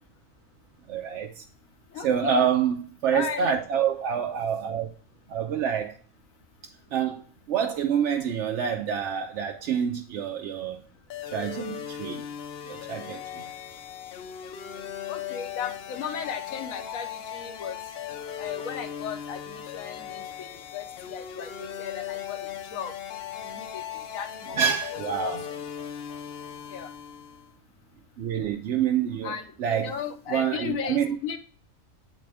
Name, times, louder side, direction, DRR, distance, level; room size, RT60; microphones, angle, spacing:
voice 1, 0.9-1.4 2.0-4.9 5.3-6.0 6.9-10.8 11.3-12.2 12.7-13.4 24.6-25.4 28.2-29.3 29.6-29.9 30.3-31.2, right 8 dB, 65° right, 0.8 m, -27 dB
voice 2, 1.9-2.4 3.1-3.5 15.1-17.8 18.4-22.9 23.4-23.8 24.1-24.8 25.2-25.3 26.7-26.9 29.2-31.4, left 7 dB, 80° left, 1.1 m, -36 dB
sound 1, 11.1-27.5, left 9 dB, 60° left, 0.7 m, -38 dB
7.8 x 4.2 x 3.3 m
omnidirectional pair, 1.4 m